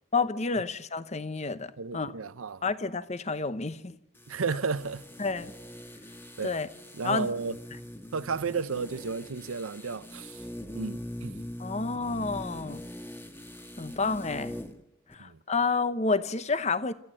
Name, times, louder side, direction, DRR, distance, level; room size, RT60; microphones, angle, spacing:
voice 1, 0.1-2.2 2.6-4.0 5.2-5.5 6.4-6.7 7.0-7.3 11.6-12.8 13.8-14.6 15.1-16.9, left 4 dB, 35° left, 0.8 m, -29 dB
voice 2, 1.8-2.6 4.3-5.1 6.4-6.6 6.9-7.6 8.1-10.4 10.7-11.4 15.2-15.4, right 5 dB, 85° right, 0.7 m, -33 dB
sound 1, 4.2-14.8 15.1-15.2, left 1 dB, 10° left, 1.4 m, -42 dB
27.5 x 14.0 x 7.6 m
head